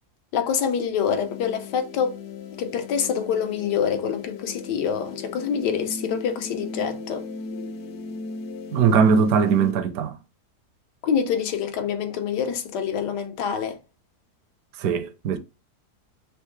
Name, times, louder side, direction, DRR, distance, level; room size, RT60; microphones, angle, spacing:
voice 1, 0.3-2.2 2.6-7.3 11.0-13.8, left 7 dB, 85° left, 1.4 m, -26 dB
sound 1, 1.0-9.7, left 3 dB, 65° left, 1.0 m, -37 dB
voice 2, 8.7-10.2 14.8-15.4, right 6 dB, 70° right, 1.1 m, -20 dB
4.7 x 3.0 x 3.2 m
omnidirectional pair, 1.7 m